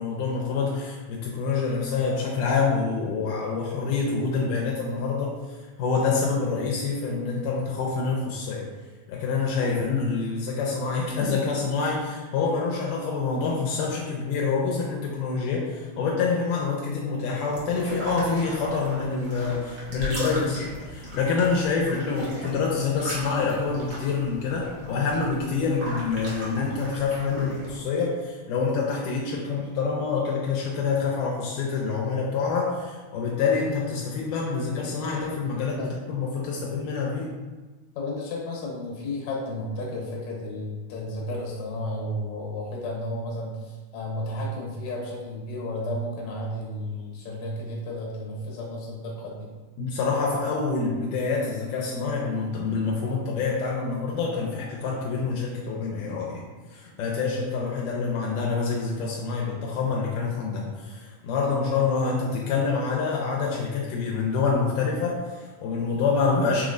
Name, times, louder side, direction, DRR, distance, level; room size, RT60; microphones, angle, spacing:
voice 1, 0.0-5.3 5.8-8.7 9.1-37.3 49.8-56.4 56.7-66.7, left 4 dB, 85° left, -3 dB, 2.1 m, -26 dB
sound 1, 17.4-27.7, right 1 dB, 70° right, 1.0 m, -38 dB
voice 2, 37.9-49.5 57.1-57.3, left 1 dB, 65° left, -2 dB, 2.1 m, -33 dB
5.7 x 3.1 x 2.5 m, 1.3 s
omnidirectional pair, 3.7 m